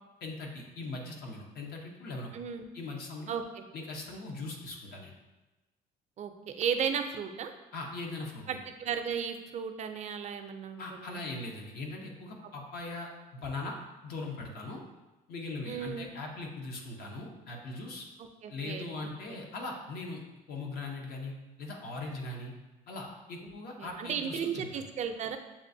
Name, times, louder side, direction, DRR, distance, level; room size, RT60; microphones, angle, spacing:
voice 1, 0.2-2.3 2.7-3.3 3.7-5.1 7.7-8.6 10.8-13.8 14.0-14.8 15.3-18.1 18.5-20.2 20.5-22.5 22.9-24.9, left 2 dB, 65° left, 0 dB, 0.9 m, -40 dB
voice 2, 2.3-2.7 3.3-3.7 6.2-7.5 8.5-11.2 15.7-16.1 18.2-19.4 23.4-23.5 23.8-25.4, right 7 dB, 45° right, 6 dB, 0.4 m, -35 dB
7.1 x 2.4 x 2.6 m, 1.1 s
cardioid pair, 110°, 17 cm